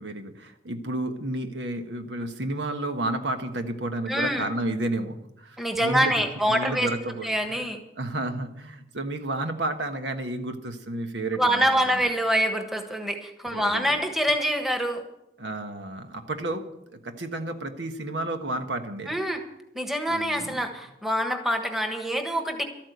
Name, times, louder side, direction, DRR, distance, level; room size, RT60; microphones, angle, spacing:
voice 1, 0.0-6.1 6.5-7.7 8.0-12.0 13.5-14.0 15.4-16.6 16.9-19.2 20.1-20.6, right 2 dB, 85° right, 6 dB, 1.4 m, -31 dB
voice 2, 4.1-4.5 5.6-6.9 7.2-7.8 11.4-15.0 19.1-19.4 19.7-22.6, equal, ahead, 4 dB, 1.3 m, -25 dB
13.0 x 9.0 x 8.0 m, 0.84 s
head